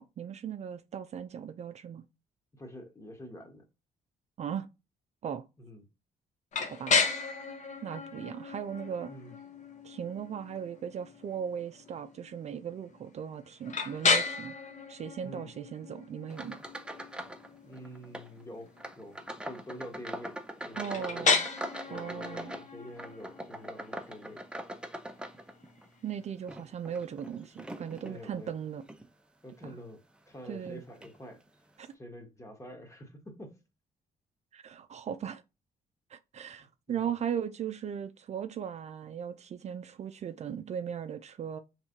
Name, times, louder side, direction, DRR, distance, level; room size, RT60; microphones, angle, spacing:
voice 1, 0.0-2.0 4.4-4.7 5.2-5.5 6.6-7.0 7.8-9.1 9.8-14.6 14.9-16.6 20.8-21.4 21.9-22.5 26.0-28.8 29.6-29.8 30.5-30.8 31.8-31.9 34.5-35.4 36.1-41.6, right 8 dB, 50° right, 0.4 m, -38 dB
voice 2, 2.5-3.6 5.6-5.8 9.1-9.4 15.2-15.5 17.6-18.7 19.0-19.2 19.4-20.4 20.6-21.3 21.9-24.4 28.0-28.6 29.4-30.0 30.3-31.4 31.9-33.6 36.6-37.1, equal, 20° left, 1.4 m, -47 dB
sound 1, 6.5-26.3, left 4 dB, 55° left, 1.0 m, -34 dB
sound 2, 16.3-17.5 17.7-18.3 18.8-25.9 26.4-28.2 28.8-29.1 29.6-29.7 30.6-30.7 31.0-31.2, right 1 dB, 5° right, 0.6 m, -42 dB
4.3 x 3.3 x 2.8 m
supercardioid pair, 65°, 15 cm